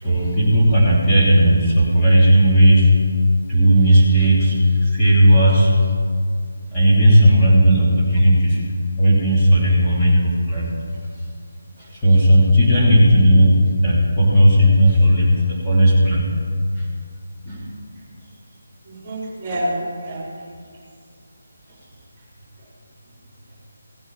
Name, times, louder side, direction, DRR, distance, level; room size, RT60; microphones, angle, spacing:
voice 1, 0.0-2.9 3.5-5.7 6.7-8.6 9.0-10.7 11.9-16.3 16.7-16.9 17.4-17.7, equal, 15° left, -9 dB, 2.9 m, -14 dB
voice 2, 18.8-20.3 21.7-21.8 22.6-22.7, right 1 dB, 20° right, -4 dB, 3.3 m, -29 dB
16.0 x 6.4 x 7.2 m, 2.2 s
figure-of-eight pair, 155°, 0 cm